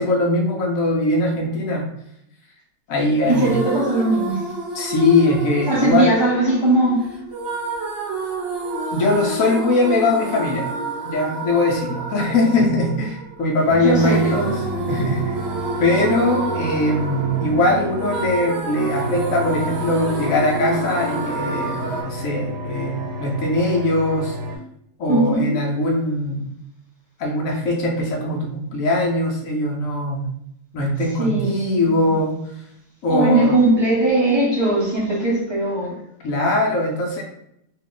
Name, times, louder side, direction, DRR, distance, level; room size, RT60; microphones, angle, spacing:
voice 1, 0.0-1.9 2.9-3.6 4.7-6.1 8.9-10.7 11.0-14.5 14.9-15.3 15.8-24.4 25.0-26.5 27.2-30.3 30.7-32.4 33.0-33.6 36.2-37.2, left 2 dB, 70° left, 0.9 m, -21 dB
sound 1, 3.2-22.0, right 3 dB, 55° right, 0.8 m, -29 dB
voice 2, 3.3-4.5 5.7-7.2 13.8-14.8 25.1-25.6 31.2-32.2 33.1-36.0, right 2 dB, 20° right, 0.7 m, -20 dB
sound 2, 13.7-24.6, equal, 90° right, 1.1 m, -31 dB
2.8 x 2.3 x 3.7 m
omnidirectional pair, 1.6 m